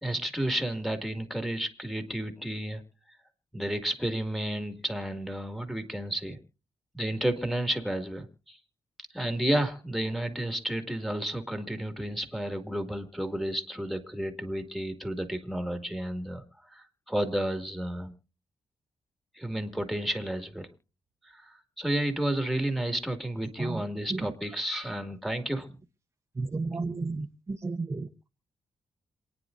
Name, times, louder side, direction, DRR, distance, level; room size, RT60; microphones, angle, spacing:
voice 1, 0.0-2.8 3.5-6.4 6.9-8.6 9.1-18.1 19.3-20.7 21.2-25.8, right 1 dB, ahead, 2.2 m, -31 dB
voice 2, 26.3-28.3, right 3 dB, 25° right, 0.9 m, -33 dB
27.5 x 9.7 x 2.6 m
cardioid pair, 80°, 10 cm